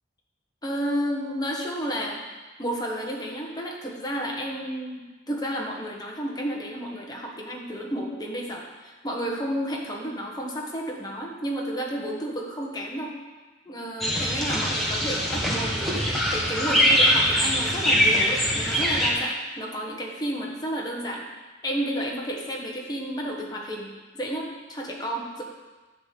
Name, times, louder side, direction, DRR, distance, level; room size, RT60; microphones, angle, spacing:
voice 1, 0.6-2.2 2.6-13.2 13.6-21.3 21.6-25.4, equal, 20° left, -1 dB, 1.4 m, -31 dB
sound 1, 14.0-19.1, equal, ahead, 1.7 m, -23 dB
11.0 x 4.1 x 7.7 m, 1.2 s
head